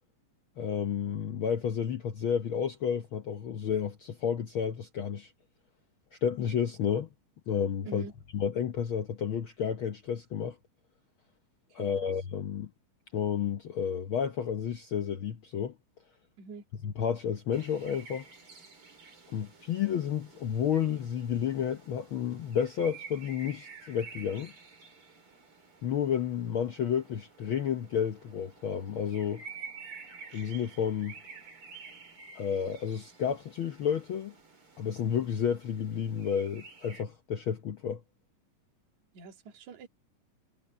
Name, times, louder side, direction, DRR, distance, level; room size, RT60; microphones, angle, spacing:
voice 1, 0.6-5.3 6.2-7.1 7.5-8.1 8.3-10.6 11.7-12.7 13.1-15.7 16.8-18.3 19.3-24.5 25.8-29.4 30.3-31.2 32.3-34.3 34.8-38.0, left 8 dB, 85° left, 1.1 m, -31 dB
voice 2, 11.8-12.1 16.4-16.6 39.1-39.9, right 4 dB, 65° right, 3.4 m, -45 dB
sound 1, 17.5-37.0, right 5 dB, 40° right, 4.7 m, -51 dB
omnidirectional pair, 3.7 m